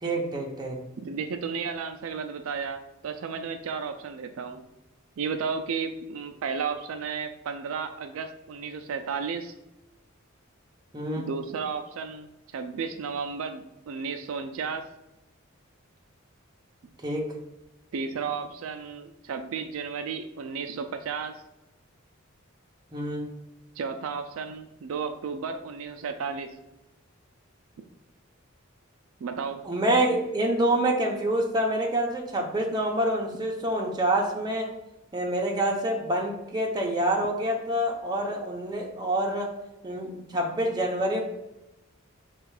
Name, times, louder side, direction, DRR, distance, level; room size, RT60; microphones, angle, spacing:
voice 1, 0.0-0.8 10.9-11.3 17.0-17.3 22.9-23.3 29.6-34.7 35.1-39.6 39.8-41.2, right 1 dB, 20° right, 0 dB, 0.7 m, -27 dB
voice 2, 1.0-4.6 5.2-9.5 11.2-14.8 17.9-21.3 23.8-26.5 29.2-29.6, right 5 dB, 75° right, 7 dB, 0.4 m, -33 dB
4.3 x 2.4 x 4.7 m, 0.94 s
head